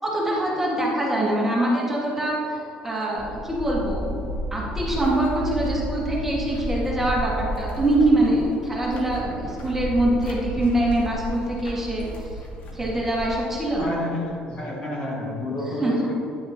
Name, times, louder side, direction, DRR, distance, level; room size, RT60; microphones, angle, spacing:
voice 1, 0.0-2.6 2.8-4.2 4.5-12.3 12.7-13.9 15.7-15.9, right 1 dB, 10° right, -5 dB, 1.6 m, -24 dB
sound 1, 3.2-14.0, equal, 55° left, 1.2 m, -32 dB
voice 2, 13.8-16.1, left 1 dB, 35° left, -3 dB, 1.5 m, -30 dB
10.0 x 6.6 x 2.8 m, 2.9 s
cardioid pair, 145°, 3 cm